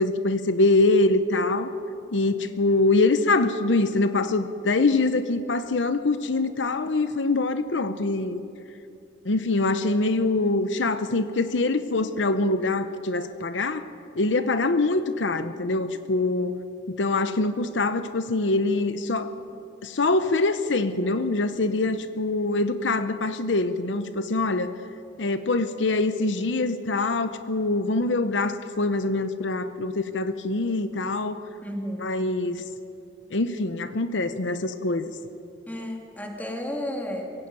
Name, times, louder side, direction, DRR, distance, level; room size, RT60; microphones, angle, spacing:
voice 1, 0.0-1.7 2.1-8.4 9.2-13.9 14.2-16.6 16.9-19.3 19.8-24.7 25.2-31.4 32.0-32.7 33.3-35.1, left 2 dB, 75° left, 11 dB, 0.8 m, -24 dB
voice 2, 31.6-32.1 35.7-37.3, left 1 dB, 10° left, 1 dB, 2.8 m, -32 dB
21.5 x 16.5 x 9.1 m, 2.6 s
head